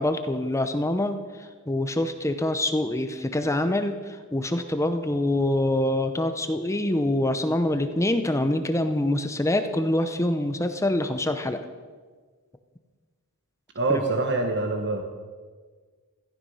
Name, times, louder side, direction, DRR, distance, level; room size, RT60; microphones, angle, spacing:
voice 1, 0.0-11.7 13.9-14.1, left 1 dB, 15° left, 8 dB, 0.8 m, -25 dB
voice 2, 13.7-15.0, right 3 dB, 55° right, 4 dB, 1.3 m, -25 dB
16.5 x 15.0 x 5.6 m, 1.5 s
head